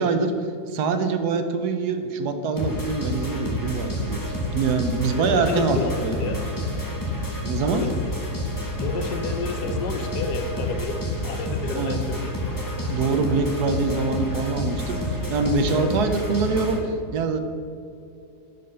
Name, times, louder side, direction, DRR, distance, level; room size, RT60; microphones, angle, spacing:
voice 1, 0.0-4.2 4.5-6.4 7.4-7.8 11.7-12.0 12.9-17.4, right 4 dB, 75° right, 8 dB, 1.3 m, -24 dB
sound 1, 2.6-16.8, left 1 dB, 15° left, 1.3 m, -29 dB
voice 2, 5.2-6.4 7.6-7.9 8.8-12.3 15.7-15.9, left 4 dB, 75° left, 7 dB, 1.4 m, -31 dB
10.5 x 5.2 x 5.6 m, 2.7 s
omnidirectional pair, 1.8 m